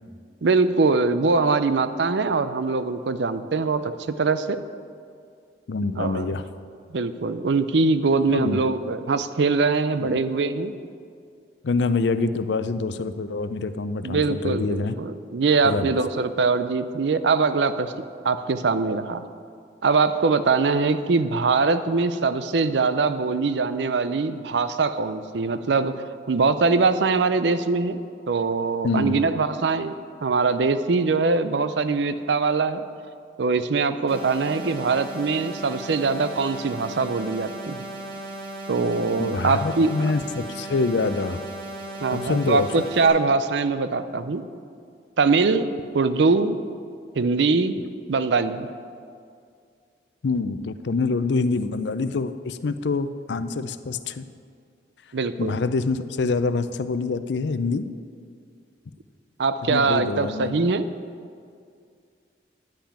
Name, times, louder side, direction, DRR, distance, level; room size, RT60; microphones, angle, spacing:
voice 1, 0.4-4.6 6.0-6.3 6.9-10.7 14.0-17.9 18.2-19.2 19.8-25.9 26.3-28.0 28.3-29.9 30.2-32.8 33.4-37.8 38.7-39.9 42.0-44.4 45.2-45.7 45.9-46.6 47.2-47.8 48.1-48.7 55.1-55.5 59.4-60.9, right 4 dB, 75° right, 12 dB, 0.5 m, -22 dB
voice 2, 5.7-6.4 8.3-8.6 10.0-10.2 11.6-14.9 15.6-15.9 28.8-29.2 39.2-41.4 42.1-42.7 50.2-54.2 55.4-57.9 59.6-60.7, left 3 dB, 75° left, 12 dB, 0.5 m, -26 dB
sound 1, 34.1-43.1, right 2 dB, 55° right, 2.5 m, -36 dB
10.0 x 5.8 x 8.6 m, 2.3 s
head